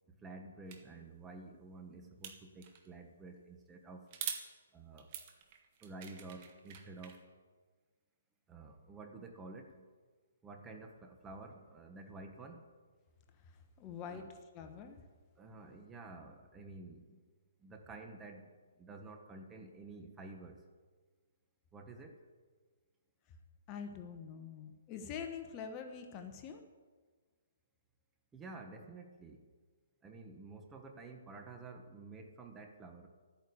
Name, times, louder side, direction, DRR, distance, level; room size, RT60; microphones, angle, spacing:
voice 1, 0.1-4.1 4.7-5.1 5.8-7.2 8.5-9.9 10.4-12.6 14.0-14.2 15.4-17.2 17.6-20.6 21.7-22.2 28.3-29.5 30.0-33.1, right 3 dB, 10° right, 5 dB, 1.2 m, -51 dB
sound 1, 0.7-0.8 2.2-2.9 4.1-4.4 5.0-7.2, right 8 dB, 30° right, 1.6 m, -44 dB
voice 2, 13.4-14.3 14.5-15.0 23.7-26.6, left 7 dB, 20° left, 6 dB, 1.1 m, -45 dB
13.0 x 9.3 x 8.4 m, 1.4 s
hypercardioid pair, 160°, 0 cm